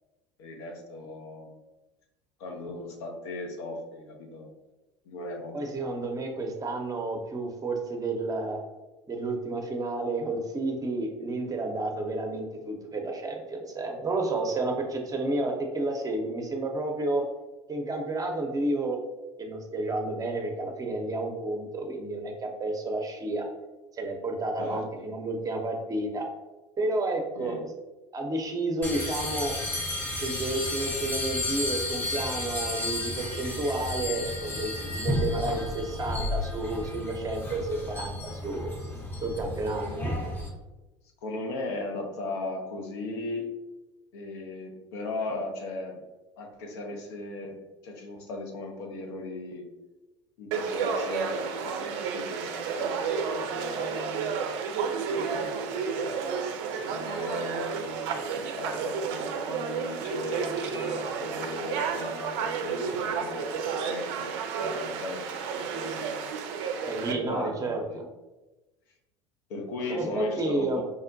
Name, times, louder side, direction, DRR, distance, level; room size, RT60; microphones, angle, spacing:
voice 1, 0.4-1.6 2.4-4.5 5.1-5.8 24.6-25.1 27.3-27.6 41.2-43.5 44.1-46.0 46.4-49.7 50.4-54.5 55.1-56.2 56.9-58.2 58.6-64.3 64.6-66.3 67.1-68.0 69.5-70.8, left 2 dB, 70° left, 2 dB, 0.7 m, -37 dB
voice 2, 5.5-8.6 9.1-17.2 17.7-19.0 19.4-23.5 24.0-26.2 26.8-27.6 28.1-29.5 30.2-38.7 39.2-40.0 66.9-68.1 69.9-70.8, right 2 dB, 25° right, 2 dB, 0.7 m, -31 dB
sound 1, 28.8-40.5, left 1 dB, 15° left, 0.7 m, -32 dB
Conversation / Crowd, 50.5-67.1, right 6 dB, 60° right, 0.4 m, -31 dB
5.1 x 2.1 x 2.6 m, 1.1 s
hypercardioid pair, 75°, 15 cm